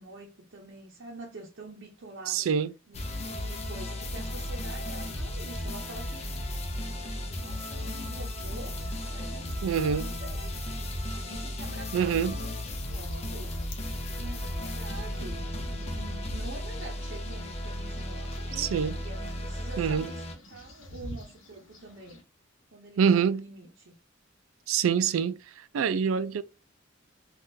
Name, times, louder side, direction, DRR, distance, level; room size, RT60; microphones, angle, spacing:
voice 1, 0.0-2.5 2.9-6.4 7.3-10.8 11.1-12.6 12.9-13.6 14.1-22.2 22.7-24.0, right 2 dB, 60° right, 0.7 m, -46 dB
voice 2, 2.3-2.7 9.6-10.1 11.9-12.4 18.6-19.0 19.8-20.1 23.0-23.4 24.7-26.4, right 7 dB, 90° right, 0.4 m, -26 dB
sound 1, 2.9-20.3, left 1 dB, 30° left, 0.6 m, -35 dB
sound 2, 12.3-22.2, left 1 dB, 75° left, 0.8 m, -50 dB
3.5 x 2.4 x 2.6 m
head